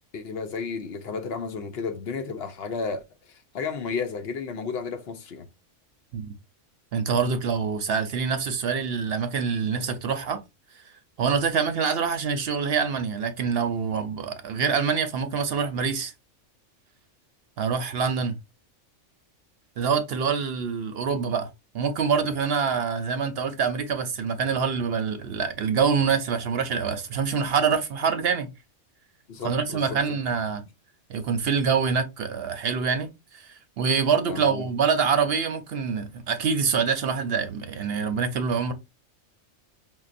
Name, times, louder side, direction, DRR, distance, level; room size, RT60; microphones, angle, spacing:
voice 1, 0.1-3.0 3.3-5.5 29.3-30.0 34.3-34.7, left 5 dB, 65° left, 0.8 m, -32 dB
voice 2, 6.9-10.4 11.2-16.1 17.6-18.4 19.8-21.5 21.7-28.5 29.4-30.6 31.1-38.7, right 6 dB, 65° right, 0.7 m, -25 dB
5.4 x 2.1 x 2.4 m
omnidirectional pair, 1.3 m